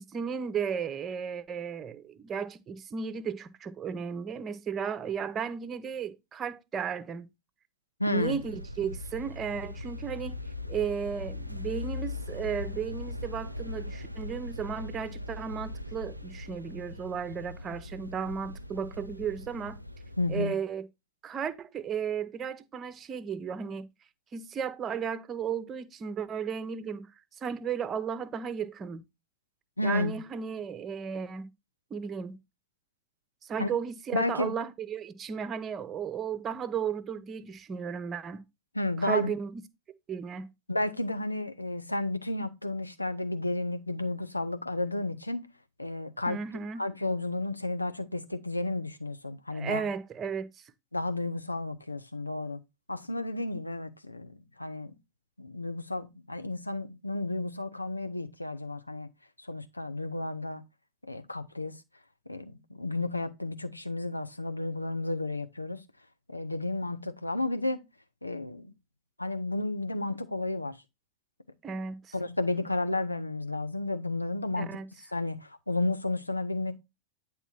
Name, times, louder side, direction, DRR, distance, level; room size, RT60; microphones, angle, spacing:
voice 1, 0.0-7.3 8.1-10.4 10.7-19.8 20.3-20.9 21.2-23.9 24.3-27.1 27.4-29.0 29.8-31.5 31.9-32.4 33.4-38.4 39.0-39.5 40.1-40.5 46.3-46.8 49.5-50.7 71.6-72.1 74.5-74.9, right 7 dB, 25° right, 0.6 m, -34 dB
voice 2, 8.0-8.3 20.2-20.5 29.8-30.2 33.6-33.7 34.1-34.6 38.7-39.3 40.7-45.5 45.8-46.4 46.8-49.8 50.9-52.6 52.9-54.9 55.4-59.1 59.4-60.6 61.1-61.8 62.3-65.8 66.3-67.8 68.2-68.7 69.2-70.8 72.1-74.8 75.1-76.7, left 2 dB, 85° left, 0.7 m, -32 dB
sound 1, 8.2-20.5, left 2 dB, 85° right, 0.4 m, -40 dB
9.2 x 3.6 x 4.4 m
figure-of-eight pair, 90°, 0 cm